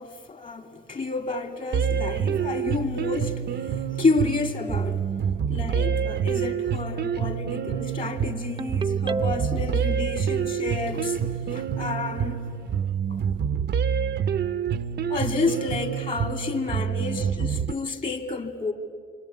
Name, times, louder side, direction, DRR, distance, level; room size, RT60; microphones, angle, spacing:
voice 1, 0.0-5.0 5.5-12.5 13.1-13.2 15.1-18.7, left 3 dB, 40° left, 2.7 m, -30 dB
sound 1, 1.7-17.7, right 7 dB, 60° right, 0.8 m, -27 dB
Ringtone, 8.6-9.8, right 3 dB, 20° right, 0.7 m, -29 dB
28.0 x 24.5 x 8.6 m
cardioid pair, 90°, 20 cm